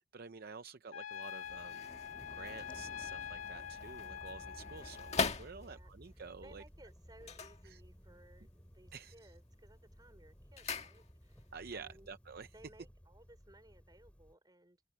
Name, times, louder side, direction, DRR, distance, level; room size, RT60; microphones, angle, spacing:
voice 1, 0.0-1.9 2.3-6.6 7.6-7.8 8.9-9.3 11.5-12.5, right 5 dB, 50° right, 0.7 m, -50 dB
Trumpet, 0.9-5.3, left 9 dB, 85° left, 2.1 m, -45 dB
sound 1, 1.1-6.1 7.1-8.3 8.6-9.1 9.4-11.5 11.8-11.9, left 4 dB, 35° left, 1.7 m, -42 dB
sound 2, 1.4-14.3, equal, 5° left, 6.5 m, -57 dB
voice 2, 5.5-12.1 12.5-14.9, right 1 dB, 20° right, 4.8 m, -61 dB
head